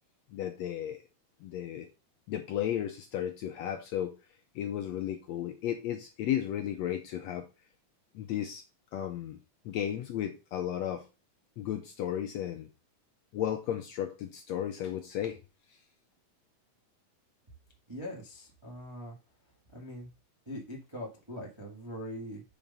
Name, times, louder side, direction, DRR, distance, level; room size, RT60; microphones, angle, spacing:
voice 1, 0.3-1.0 1.4-1.9 2.3-4.1 4.5-7.5 8.1-8.6 8.9-9.4 9.6-11.0 11.6-12.7 13.3-15.4, left 10 dB, 75° left, 5 dB, 1.7 m, -34 dB
voice 2, 17.9-19.1 19.7-20.1 20.4-22.4, equal, 20° right, -2 dB, 0.7 m, -42 dB
7.5 x 4.3 x 5.3 m, 0.30 s
omnidirectional pair, 3.8 m